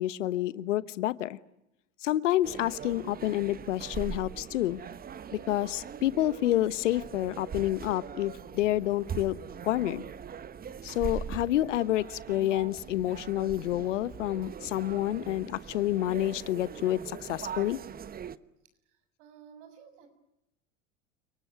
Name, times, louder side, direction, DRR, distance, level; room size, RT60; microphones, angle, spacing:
voice 1, 0.0-1.4 2.0-4.8 5.3-9.4 9.6-10.0 10.8-17.8, left 14 dB, 75° left, 18 dB, 1.1 m, -29 dB
sound 1, 2.4-18.4, right 7 dB, 25° right, 1.1 m, -41 dB
voice 2, 18.9-20.1, right 7 dB, 65° right, 8 dB, 6.8 m, -53 dB
29.5 x 19.5 x 9.4 m, 0.88 s
hypercardioid pair, 85°, 37 cm